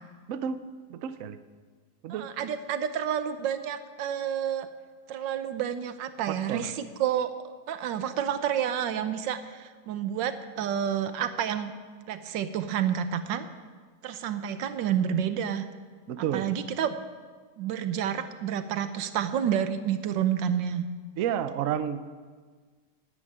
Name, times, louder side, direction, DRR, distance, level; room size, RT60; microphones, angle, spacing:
voice 1, 0.3-0.6 0.9-1.4 2.0-2.3 6.3-6.7 16.1-16.5 21.2-22.0, right 9 dB, 60° right, 12 dB, 0.9 m, -31 dB
voice 2, 2.1-4.7 5.1-11.7 12.1-13.5 14.0-15.6 16.2-16.9 17.6-20.8, right 9 dB, 90° right, 11 dB, 1.5 m, -29 dB
10.5 x 10.0 x 8.7 m, 1.5 s
omnidirectional pair, 1.9 m